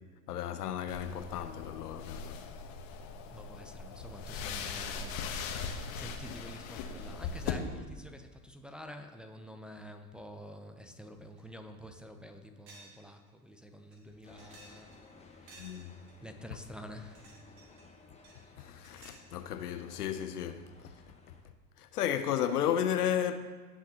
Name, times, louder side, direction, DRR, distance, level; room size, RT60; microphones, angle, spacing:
voice 1, 0.3-2.4 15.6-16.0 18.6-20.9 21.3-21.4 21.8-23.4, left 9 dB, 80° left, 0.8 m, -33 dB
sound 1, 0.9-7.5, left 6 dB, 50° left, 1.2 m, -40 dB
voice 2, 3.3-15.0 15.3-15.9 16.2-17.4, equal, ahead, 0.7 m, -49 dB
sound 2, 11.4-11.5 11.9-12.0 12.7-13.0 13.3-13.4 13.9-15.0 15.5-16.1 16.9-17.9 18.2-19.3, right 2 dB, 60° right, 2.4 m, -56 dB
sound 3, 14.2-21.4, left 3 dB, 15° left, 1.3 m, -57 dB
17.0 x 5.9 x 2.9 m
hypercardioid pair, 80°, 46 cm